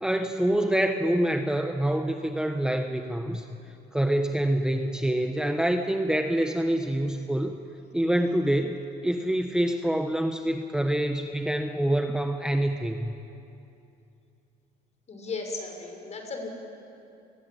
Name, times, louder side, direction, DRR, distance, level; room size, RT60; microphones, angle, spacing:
voice 1, 0.0-3.5 3.9-7.6 7.9-13.1, right 1 dB, 5° right, 5 dB, 1.2 m, -26 dB
voice 2, 15.1-16.5, left 3 dB, 40° left, 3 dB, 5.9 m, -35 dB
28.0 x 20.5 x 8.8 m, 2.7 s
cardioid pair, 110°, 17 cm